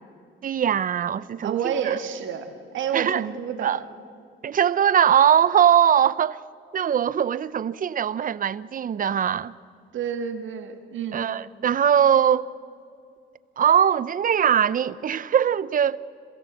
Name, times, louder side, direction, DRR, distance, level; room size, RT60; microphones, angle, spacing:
voice 1, 0.4-2.0 2.9-3.2 3.6-3.8 4.4-6.4 6.7-9.5 11.1-12.5 13.6-16.0, right 9 dB, 45° right, 0.6 m, -21 dB
voice 2, 1.4-3.7 9.9-11.2, right 8 dB, 75° right, 2.2 m, -29 dB
27.0 x 15.5 x 7.8 m
cardioid pair, 90°, 20 cm